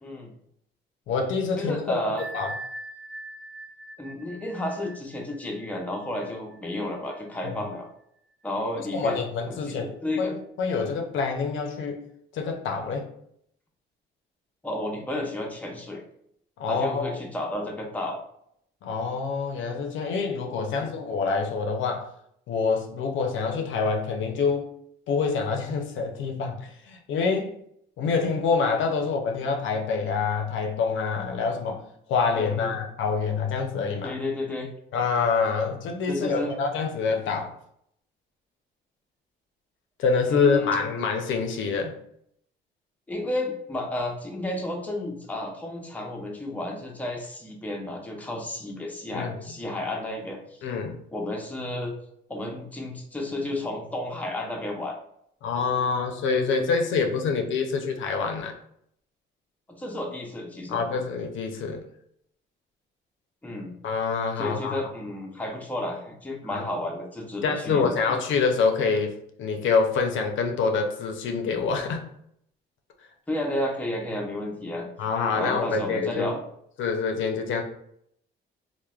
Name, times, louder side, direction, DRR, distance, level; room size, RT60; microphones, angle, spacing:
voice 1, 0.0-0.3 1.6-2.2 4.0-7.9 8.4-10.3 14.6-16.0 16.7-18.2 20.7-20.9 32.4-32.7 34.0-34.7 36.1-36.5 40.3-40.8 43.1-50.7 51.1-51.9 52.3-54.9 59.8-60.8 63.4-63.8 64.4-68.2 73.3-74.9 75.3-76.4, left 1 dB, 10° left, 0 dB, 0.6 m, -32 dB
voice 2, 1.1-2.0 2.3-2.5 7.4-7.5 8.7-9.9 10.2-10.3 10.6-12.0 12.3-13.1 16.6-17.2 18.8-22.1 22.5-24.7 25.1-27.5 28.0-34.1 34.9-37.5 40.0-41.9 49.1-49.4 50.6-51.0 55.4-58.5 60.7-61.8 63.8-64.8 66.5-66.6 67.4-72.1 75.0-76.3 76.8-77.6, left 5 dB, 75° left, 3 dB, 0.5 m, -26 dB
Bell, 2.2-7.6, right 1 dB, 60° right, 0.5 m, -42 dB
3.1 x 2.1 x 2.3 m, 0.71 s
cardioid pair, 90°, 20 cm